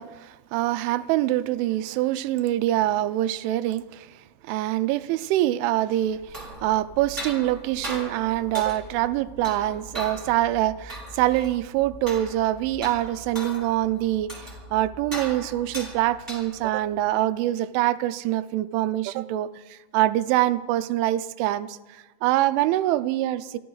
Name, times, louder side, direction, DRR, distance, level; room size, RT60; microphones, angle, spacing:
voice 1, 0.0-23.6, right 14 dB, 85° right, 3.1 m, -25 dB
sound 1, 6.1-16.8, equal, 5° right, 3.5 m, -39 dB
28.5 x 11.5 x 3.9 m
omnidirectional pair, 5.6 m